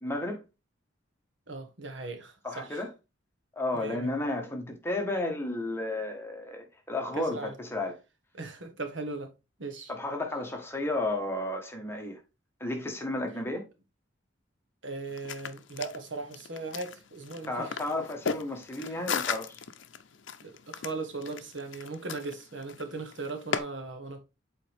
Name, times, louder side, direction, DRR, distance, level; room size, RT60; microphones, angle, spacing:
voice 1, 0.0-0.4 2.4-2.9 3.6-8.0 9.9-12.2 12.6-13.6 17.5-19.6, left 2 dB, 15° left, 1.4 m, -33 dB
voice 2, 1.5-2.8 3.7-4.1 7.2-7.5 8.3-9.3 9.6-9.9 14.8-17.8 18.8-19.0 20.4-24.2, right 3 dB, 70° right, 1.4 m, -38 dB
sound 1, 15.1-23.6, left 6 dB, 75° left, 0.6 m, -37 dB
8.1 x 4.1 x 3.5 m
head